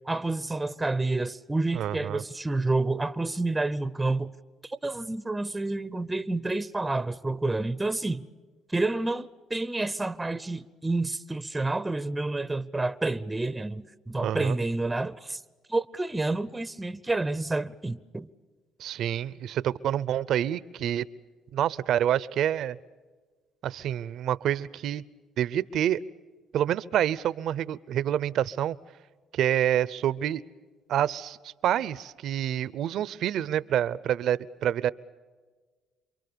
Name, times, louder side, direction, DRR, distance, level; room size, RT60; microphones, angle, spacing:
voice 1, 0.0-4.3 4.6-8.3 8.7-15.4 15.7-18.3, right 2 dB, 15° right, 0.7 m, -29 dB
voice 2, 1.7-2.2 14.2-14.6 18.8-21.1 21.5-22.8 23.6-25.0 25.4-26.0 26.5-28.8 29.3-30.4 30.9-34.9, right 11 dB, 65° right, 0.7 m, -27 dB
28.0 x 23.5 x 7.0 m
cardioid pair, 100°, 0 cm